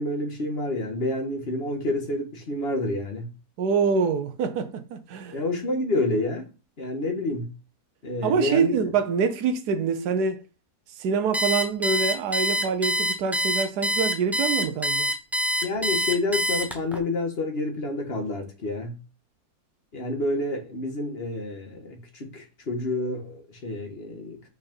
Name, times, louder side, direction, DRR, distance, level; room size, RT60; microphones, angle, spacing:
voice 1, 0.0-3.3 5.3-6.4 6.8-7.5 8.0-8.7 15.6-19.0 19.9-24.5, left 2 dB, 40° left, 1.6 m, -28 dB
voice 2, 3.6-5.4 8.2-10.4 11.0-15.1, right 5 dB, 75° right, 1.3 m, -25 dB
Alarm, 11.3-17.0, equal, ahead, 0.7 m, -25 dB
5.9 x 4.1 x 5.3 m
omnidirectional pair, 1.7 m